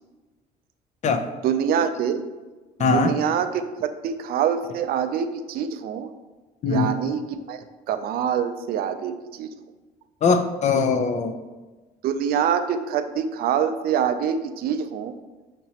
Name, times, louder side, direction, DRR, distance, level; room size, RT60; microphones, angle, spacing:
voice 1, 1.4-2.2 2.8-6.1 6.7-7.2 7.5-9.5 12.0-15.1, right 8 dB, 65° right, 9 dB, 0.4 m, -25 dB
voice 2, 2.8-3.1 6.6-6.9 10.2-11.4, left 4 dB, 45° left, 8 dB, 0.4 m, -21 dB
6.0 x 2.9 x 2.8 m, 1.2 s
cardioid pair, 110°, 17 cm